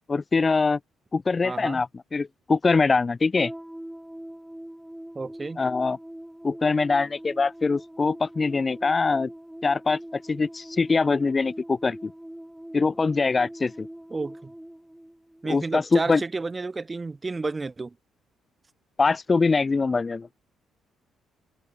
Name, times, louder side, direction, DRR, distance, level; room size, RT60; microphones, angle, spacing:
voice 1, 0.1-0.8 1.1-3.5 5.6-6.0 6.4-9.3 9.6-12.1 12.7-13.9 15.5-16.2 19.0-20.3, left 4 dB, 30° left, 1.0 m, -23 dB
voice 2, 1.4-1.8 5.1-5.6 14.1-14.5 15.4-17.9, right 3 dB, 25° right, 6.2 m, -31 dB
sound 1, 3.4-15.9, right 1 dB, 5° right, 2.9 m, -42 dB
cardioid pair, 80°, 0 cm